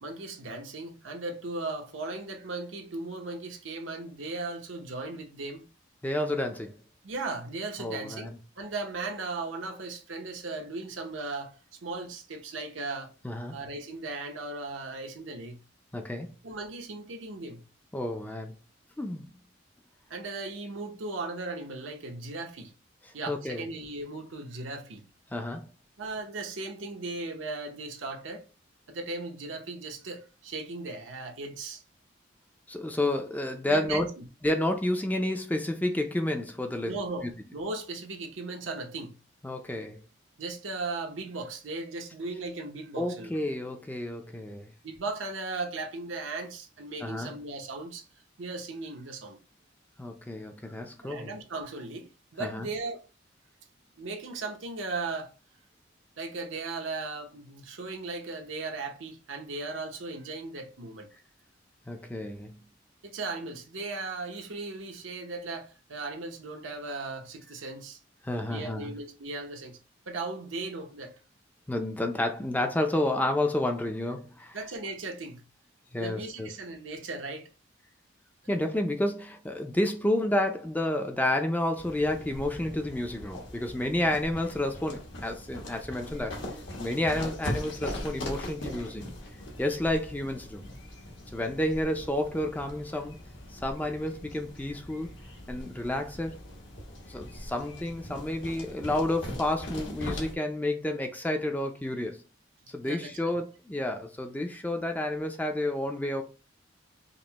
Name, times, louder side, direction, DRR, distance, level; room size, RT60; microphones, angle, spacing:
voice 1, 0.0-5.6 7.0-13.1 13.5-15.6 16.4-17.7 20.1-22.7 23.1-25.0 26.0-28.4 28.9-31.8 33.7-34.2 36.8-37.3 37.5-39.1 40.4-43.3 44.8-48.0 48.4-49.4 51.0-53.0 54.0-55.3 56.2-61.1 63.0-68.0 68.5-69.8 70.1-71.1 74.5-75.4 76.0-77.5 102.9-103.4, right 3 dB, 85° right, 0.8 m, -37 dB
voice 2, 6.0-6.8 7.8-8.3 13.2-13.6 15.9-16.3 17.9-18.5 19.0-19.3 23.3-23.6 25.3-25.7 32.7-34.1 34.4-36.9 37.2-37.3 39.4-40.0 43.0-44.7 47.0-47.4 50.0-51.3 52.4-52.7 61.9-62.6 68.2-68.9 71.7-74.6 75.9-76.5 78.5-86.4 86.8-89.1 89.6-90.6 91.3-93.2 93.5-95.1 95.5-96.4 97.1-102.2 102.7-106.2, left 1 dB, 10° left, 0.4 m, -30 dB
sound 1, 81.8-100.3, left 1 dB, 75° left, 1.2 m, -41 dB
5.2 x 2.1 x 2.9 m
head